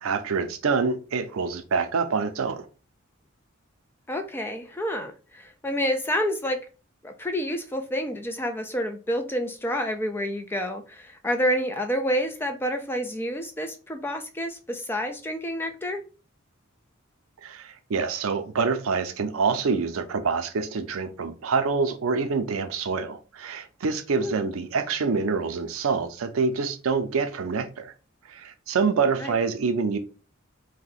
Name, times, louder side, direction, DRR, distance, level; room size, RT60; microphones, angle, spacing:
voice 1, 0.0-2.7 17.4-27.9 28.3-30.0, right 5 dB, 85° right, 0.5 m, -26 dB
voice 2, 4.1-6.7 7.0-16.0 24.2-24.4 29.2-29.4, equal, 10° left, 0.3 m, -29 dB
2.7 x 2.2 x 3.9 m
head